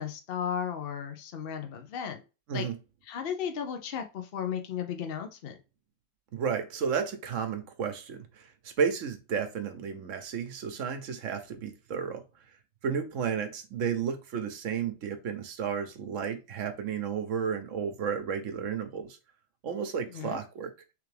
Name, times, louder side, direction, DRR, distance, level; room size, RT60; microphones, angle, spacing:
voice 1, 0.0-2.2 2.5-2.7 3.1-5.6 20.1-20.4, left 8 dB, 55° left, 0.8 m, -35 dB
voice 2, 6.3-8.5 8.8-12.2 12.8-19.2 19.6-20.7, right 7 dB, 80° right, 1.1 m, -32 dB
3.5 x 3.4 x 3.2 m
omnidirectional pair, 1.3 m